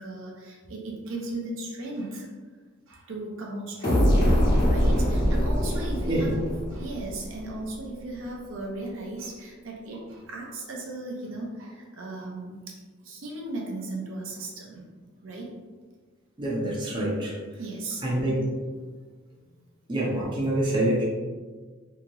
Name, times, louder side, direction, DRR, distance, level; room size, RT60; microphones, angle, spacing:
voice 1, 0.0-2.3 2.9-4.3 4.7-6.4 6.7-12.8 13.0-14.9 15.2-15.5 17.6-18.0 19.3-19.5, right 2 dB, 70° right, -1 dB, 0.6 m, -36 dB
sound 1, 3.8-7.5, equal, 55° left, 1.0 m, -23 dB
voice 2, 6.0-6.4 16.4-17.4 18.0-18.4 19.9-21.0, right 1 dB, 25° right, -4 dB, 0.5 m, -26 dB
2.9 x 2.8 x 2.5 m, 1.4 s
head